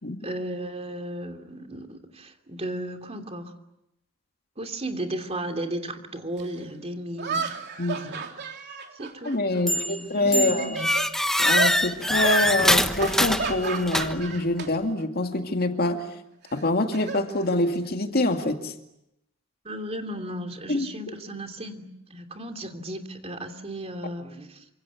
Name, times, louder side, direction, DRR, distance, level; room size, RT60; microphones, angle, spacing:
voice 1, 0.2-3.5 4.6-7.6 8.1-8.2 8.9-9.4 9.6-10.7 19.6-24.6, right 1 dB, 30° right, 5 dB, 3.0 m, -35 dB
sound 1, 6.4-6.5 7.2-9.8 10.2-11.1 11.5-11.8 12.2-12.5 13.0-14.7 15.0-15.3 16.5-17.9, right 4 dB, 50° right, 3.4 m, -32 dB
voice 2, 7.8-8.2 9.2-10.9 11.4-16.1 16.5-18.7 20.7-21.1, left 2 dB, 45° left, 5 dB, 2.3 m, -26 dB
sound 2, 9.7-10.0 10.3-14.4, left 1 dB, ahead, 1.2 m, -24 dB
28.5 x 26.0 x 7.1 m, 0.83 s
head